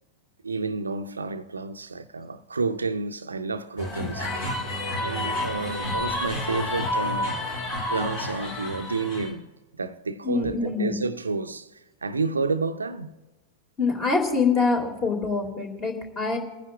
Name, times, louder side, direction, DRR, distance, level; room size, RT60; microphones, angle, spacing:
voice 1, 0.4-4.6 4.9-7.4 7.9-9.5 9.7-13.1, right 4 dB, 75° right, 0.5 m, -30 dB
sound 1, 3.8-9.3, left 1 dB, 55° left, 3.9 m, -30 dB
voice 2, 10.2-11.0 13.8-16.4, left 4 dB, 25° left, 2.1 m, -25 dB
28.5 x 9.8 x 2.4 m
figure-of-eight pair, 90°, 0 cm